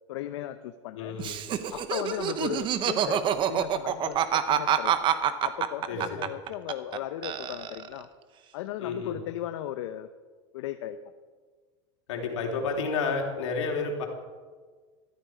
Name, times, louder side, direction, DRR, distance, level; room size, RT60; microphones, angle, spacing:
voice 1, 0.1-1.2 1.7-4.9 5.4-8.1 8.5-10.1 10.5-11.0, left 12 dB, 70° left, 9 dB, 0.7 m, -36 dB
voice 2, 0.9-1.4 5.9-6.2 8.8-9.2 12.1-14.1, left 4 dB, 85° left, 1 dB, 3.2 m, -30 dB
Laughter, 1.2-7.0 7.2-8.0, right 9 dB, 30° right, 0.9 m, -26 dB
14.0 x 13.5 x 5.0 m, 1.5 s
supercardioid pair, 140°, 15 cm